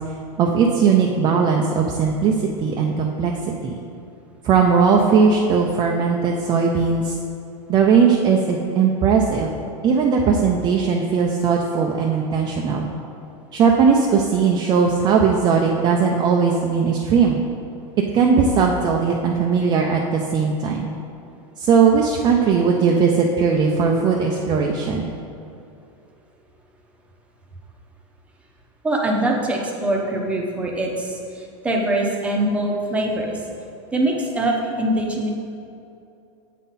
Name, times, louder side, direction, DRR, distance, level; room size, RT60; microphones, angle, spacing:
voice 1, 0.4-3.3 3.6-3.7 4.4-7.1 7.7-9.6 9.8-12.9 13.5-17.4 18.1-20.9 21.6-25.1, right 5 dB, 25° right, 0 dB, 0.4 m, -18 dB
voice 2, 28.8-33.4 33.9-35.3, right 1 dB, 10° right, -1 dB, 0.8 m, -23 dB
8.2 x 3.8 x 4.1 m, 2.7 s
supercardioid pair, 140°, 16 cm